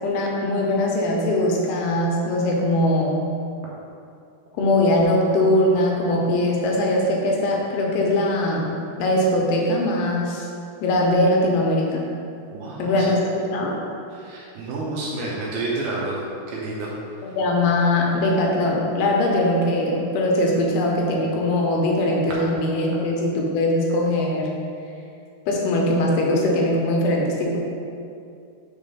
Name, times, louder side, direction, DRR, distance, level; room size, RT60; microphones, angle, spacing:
voice 1, 0.0-3.2 4.6-10.5 10.8-12.0 12.8-13.2 13.5-13.8 17.3-24.5 25.5-27.6, left 1 dB, 80° left, -1 dB, 2.6 m, -21 dB
voice 2, 12.5-13.1 14.1-16.2 16.5-16.9 17.2-17.3, right 2 dB, 75° right, -5 dB, 2.7 m, -29 dB
6.4 x 3.6 x 5.4 m, 2.5 s
omnidirectional pair, 4.6 m